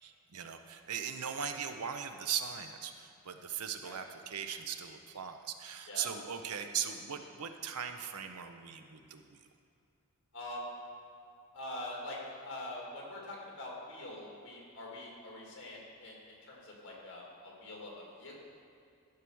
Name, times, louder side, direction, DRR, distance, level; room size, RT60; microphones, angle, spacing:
voice 1, 0.0-9.4, right 8 dB, 85° right, 7 dB, 0.7 m, -39 dB
voice 2, 10.3-10.7 11.5-16.2 16.5-18.4, left 1 dB, 55° left, -3 dB, 2.2 m, -44 dB
12.5 x 4.8 x 6.2 m, 2.5 s
head